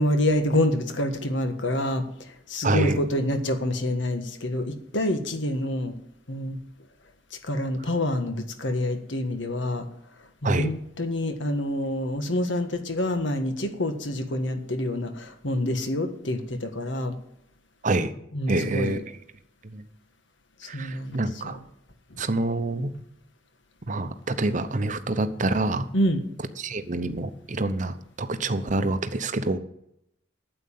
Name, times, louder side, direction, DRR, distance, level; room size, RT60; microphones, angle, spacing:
voice 1, 0.0-2.0 2.5-5.9 6.3-6.6 7.4-9.9 10.4-17.1 18.3-19.0 20.6-21.6 22.1-22.2 25.9-26.2, left 1 dB, 75° left, 7 dB, 1.6 m, -27 dB
voice 2, 2.6-3.0 10.4-10.7 17.8-18.1 18.5-19.0 19.6-19.8 20.7-21.6 22.2-22.9 23.9-25.9 26.6-29.6, right 2 dB, 40° right, 10 dB, 0.8 m, -27 dB
9.3 x 7.9 x 8.7 m, 0.77 s
head